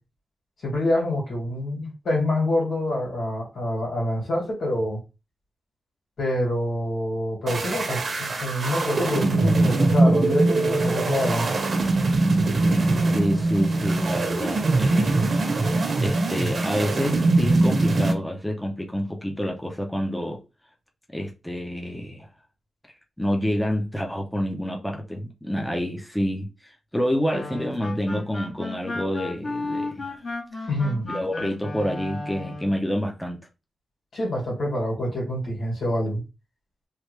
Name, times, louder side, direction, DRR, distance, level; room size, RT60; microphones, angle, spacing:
voice 1, 0.6-5.0 6.2-11.5 30.7-31.1 34.1-36.2, left 1 dB, 85° left, 2.0 m, -26 dB
sound 1, 7.5-18.1, right 2 dB, 55° right, 0.9 m, -22 dB
voice 2, 13.1-15.2 16.0-20.4 21.1-22.3 23.2-30.2 31.0-33.4, equal, 5° left, 0.7 m, -28 dB
sound 2, 27.2-32.8, left 2 dB, 55° left, 1.4 m, -34 dB
3.2 x 2.4 x 3.2 m
wide cardioid pair, 95°, 0 cm